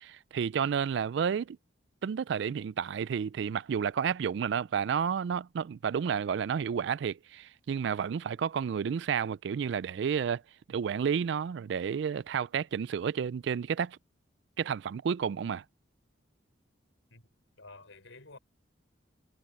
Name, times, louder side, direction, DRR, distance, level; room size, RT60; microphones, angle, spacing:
voice 1, 0.0-1.6 2.0-10.4 10.7-14.0 14.6-15.6, right 7 dB, 65° right, 0.3 m, -31 dB
voice 2, 17.6-18.4, left 3 dB, 80° left, 5.5 m, -50 dB
head